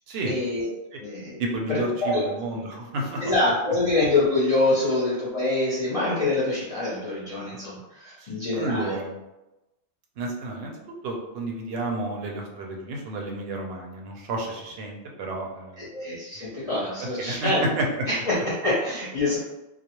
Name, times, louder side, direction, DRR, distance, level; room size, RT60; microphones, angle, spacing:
voice 1, 0.3-0.7 1.0-1.4 1.7-2.2 3.2-8.9 15.8-17.7 18.1-19.4, left 2 dB, 40° left, -8 dB, 0.6 m, -25 dB
voice 2, 1.4-3.2 4.7-4.9 8.2-9.2 10.2-15.9 17.0-18.1, right 1 dB, 70° right, 0 dB, 0.8 m, -31 dB
2.3 x 2.0 x 2.9 m, 0.99 s
omnidirectional pair, 1.1 m